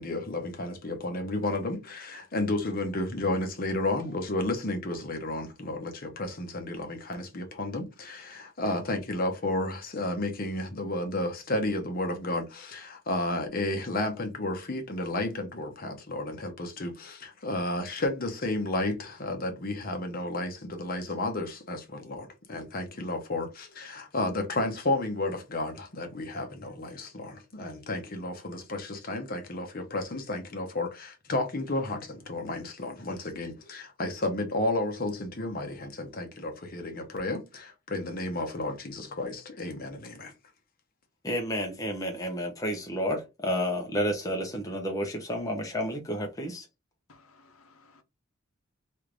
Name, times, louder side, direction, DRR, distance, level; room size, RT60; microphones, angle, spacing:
voice 1, 0.0-40.3, left 2 dB, 40° left, 0.8 m, -32 dB
voice 2, 41.2-46.7, equal, 15° left, 0.6 m, -31 dB
voice 3, 47.1-48.0, left 3 dB, 75° left, 0.7 m, -58 dB
3.2 x 2.5 x 3.2 m
head